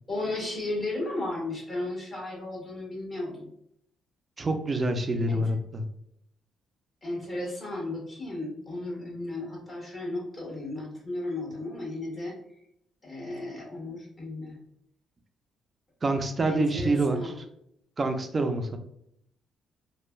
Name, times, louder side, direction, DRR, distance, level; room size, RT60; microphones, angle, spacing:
voice 1, 0.1-3.5 5.3-5.5 7.0-12.4 13.0-14.6 16.5-17.4, left 2 dB, 30° left, -3 dB, 1.4 m, -34 dB
voice 2, 4.4-5.8 16.0-17.3 18.0-18.8, right 2 dB, 30° right, 6 dB, 0.5 m, -26 dB
3.1 x 2.2 x 2.3 m, 0.74 s
cardioid pair, 90°, 0 cm